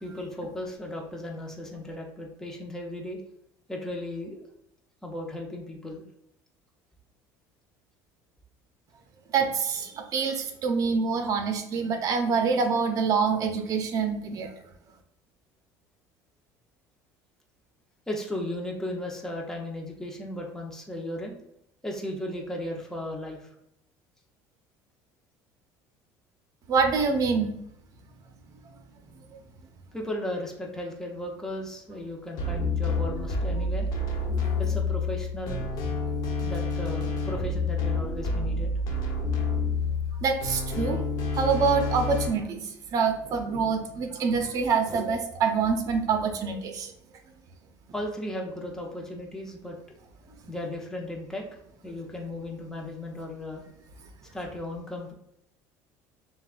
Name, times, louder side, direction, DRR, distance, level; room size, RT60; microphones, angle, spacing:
voice 1, 0.0-3.2 3.7-4.5 5.0-6.0 18.1-21.4 21.8-23.5 29.9-33.9 34.6-35.7 36.4-38.7 47.9-49.8 50.5-51.4 51.8-53.6 54.3-55.1, left 1 dB, 5° left, 0 dB, 0.8 m, -35 dB
voice 2, 9.3-14.5 26.7-27.5 40.2-41.0 41.3-46.9, right 5 dB, 45° right, 5 dB, 0.7 m, -26 dB
sound 1, 32.4-42.3, left 3 dB, 65° left, 1.0 m, -28 dB
6.8 x 2.3 x 2.5 m, 0.77 s
cardioid pair, 115°, 8 cm